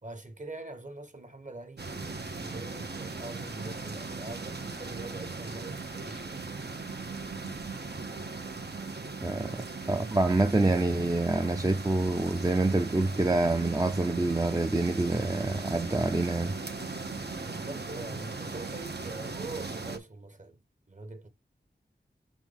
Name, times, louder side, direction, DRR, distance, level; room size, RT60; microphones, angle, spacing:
voice 1, 0.0-6.7 17.4-20.6 20.9-21.3, right 2 dB, 45° right, 1.3 m, -43 dB
sound 1, 1.8-20.0, right 3 dB, 65° right, 1.0 m, -38 dB
voice 2, 9.2-16.6, right 2 dB, 20° right, 0.5 m, -27 dB
6.3 x 4.4 x 4.0 m
wide cardioid pair, 60°, 18 cm